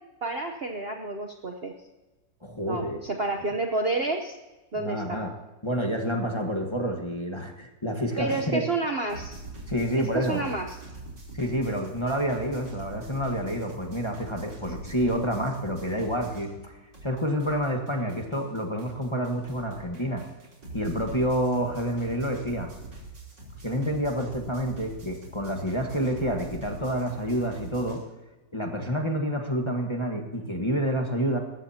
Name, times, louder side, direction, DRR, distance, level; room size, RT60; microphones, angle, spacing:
voice 1, 0.2-1.7 2.7-4.4 4.7-5.2 8.2-9.4 10.0-10.8, right 2 dB, 45° right, 3 dB, 0.9 m, -30 dB
voice 2, 2.4-3.0 4.7-5.3 5.6-8.6 9.7-10.5 11.3-20.2 20.7-22.7 23.6-28.0 28.5-31.4, equal, 15° left, 2 dB, 1.3 m, -28 dB
sound 1, 9.1-16.7 16.9-28.0, right 3 dB, 85° right, 4.3 m, -44 dB
20.0 x 15.0 x 2.9 m, 1.1 s
omnidirectional pair, 1.9 m